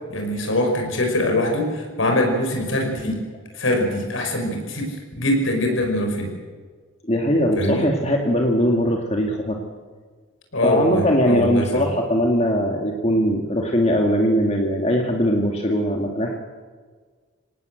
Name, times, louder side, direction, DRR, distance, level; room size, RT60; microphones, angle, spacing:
voice 1, 0.1-3.2 3.5-6.3 7.6-7.9 10.5-11.8, left 1 dB, 75° left, 2 dB, 5.9 m, -23 dB
voice 2, 7.1-9.6 10.6-16.3, equal, 30° left, 2 dB, 2.0 m, -20 dB
26.0 x 18.5 x 7.9 m, 1.5 s
head